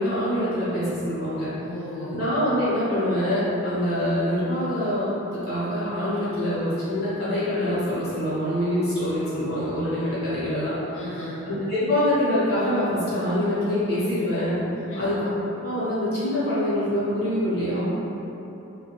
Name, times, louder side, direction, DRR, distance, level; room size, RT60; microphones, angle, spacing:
voice 1, 0.0-1.5 2.1-10.7 11.5-14.6 15.0-15.3 15.6-17.8, left 1 dB, 45° left, -11 dB, 1.1 m, -25 dB
voice 2, 1.6-2.2 10.9-11.4 14.9-15.1, left 1 dB, 65° left, -7 dB, 0.8 m, -36 dB
3.6 x 2.3 x 2.8 m, 2.9 s
head